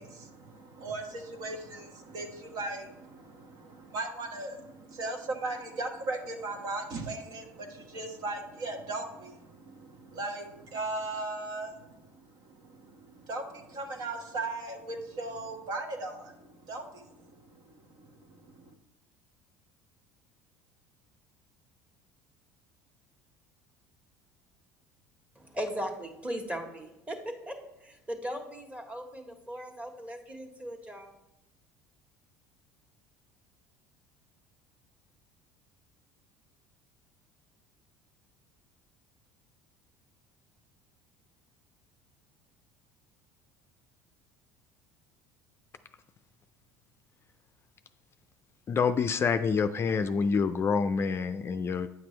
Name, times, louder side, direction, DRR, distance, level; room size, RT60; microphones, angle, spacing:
voice 1, 0.0-18.7, right 2 dB, 65° right, 3 dB, 1.3 m, -38 dB
voice 2, 25.3-27.2 27.5-27.6 27.8-31.1, equal, 15° right, 2 dB, 1.5 m, -38 dB
voice 3, 48.7-51.9, left 5 dB, 35° left, 9 dB, 0.4 m, -27 dB
9.1 x 5.9 x 3.2 m, 0.90 s
supercardioid pair, 90°, 8 cm